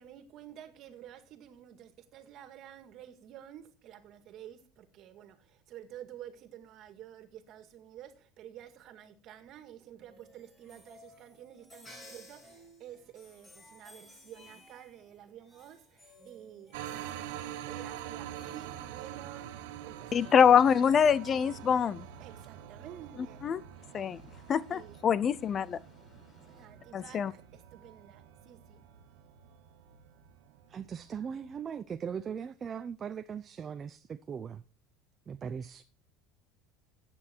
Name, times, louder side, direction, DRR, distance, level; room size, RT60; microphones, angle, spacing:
voice 1, 0.0-17.2 17.7-20.8 22.2-23.4 24.7-25.1 26.5-28.8, right 11 dB, 55° right, 2.0 m, -50 dB
sound 1, 10.0-19.5, left 1 dB, 20° left, 5.5 m, -57 dB
sound 2, 16.7-31.6, right 11 dB, 90° right, 1.5 m, -46 dB
voice 2, 20.1-22.1 23.4-23.6 23.9-24.2 24.5-25.8 26.9-27.3, left 7 dB, 35° left, 0.5 m, -24 dB
voice 3, 30.7-34.6 35.3-35.8, right 7 dB, 30° right, 0.6 m, -39 dB
14.0 x 8.8 x 4.5 m
supercardioid pair, 120°, 0 cm